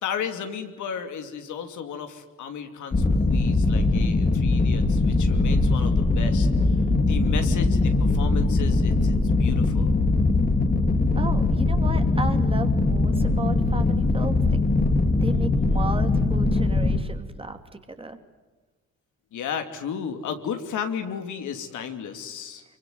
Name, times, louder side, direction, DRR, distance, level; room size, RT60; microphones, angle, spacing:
voice 1, 0.0-6.5 7.0-10.0 19.3-22.6, left 7 dB, 75° left, 6 dB, 2.9 m, -34 dB
sound 1, 2.9-17.0, left 2 dB, 30° left, 2.3 m, -21 dB
voice 2, 11.2-14.4 15.2-18.2, right 2 dB, 20° right, 7 dB, 2.6 m, -34 dB
25.0 x 24.0 x 9.4 m, 1.2 s
cardioid pair, 90°, 30 cm